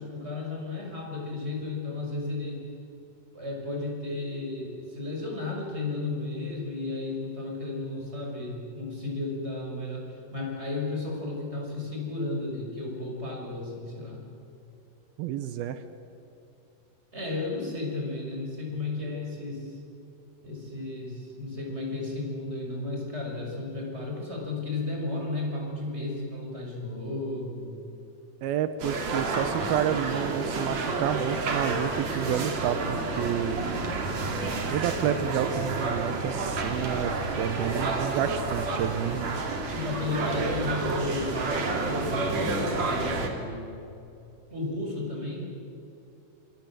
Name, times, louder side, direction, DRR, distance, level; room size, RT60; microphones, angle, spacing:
voice 1, 0.0-2.6 3.3-14.2 17.1-19.8 20.4-27.7 39.7-43.7 44.5-45.5, left 2 dB, 15° right, 0 dB, 6.2 m, -33 dB
voice 2, 15.2-15.8 28.4-33.6 34.7-39.4, right 9 dB, 85° right, 10 dB, 2.9 m, -30 dB
sound 1, 28.8-43.3, right 3 dB, 50° right, 3.7 m, -30 dB
27.5 x 26.0 x 7.6 m, 2.8 s
omnidirectional pair, 4.2 m